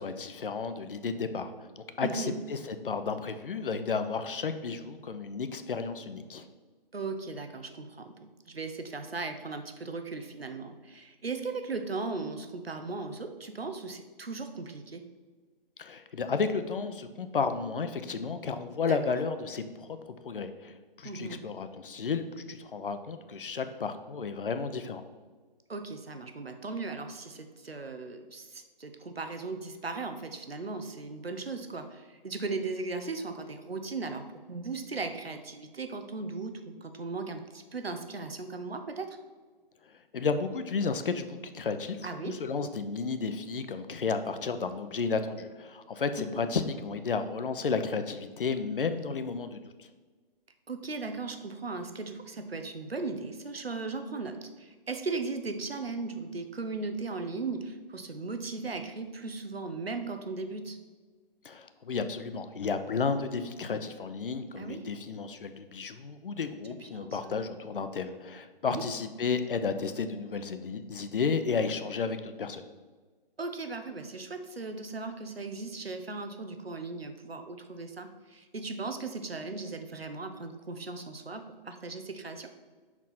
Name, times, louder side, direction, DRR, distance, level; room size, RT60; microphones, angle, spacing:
voice 1, 0.0-6.5 15.8-20.0 20.2-25.0 40.1-49.9 61.4-72.7, left 5 dB, 65° left, 9 dB, 0.6 m, -32 dB
voice 2, 2.0-2.4 6.9-8.2 8.5-15.0 18.9-19.1 21.0-21.4 25.7-36.5 36.8-39.2 42.0-42.4 46.2-46.3 50.7-60.8 64.6-64.9 66.8-67.4 68.6-68.8 73.4-82.5, right 3 dB, 90° right, 7 dB, 0.7 m, -37 dB
5.9 x 4.4 x 4.2 m, 1.4 s
figure-of-eight pair, 140°, 29 cm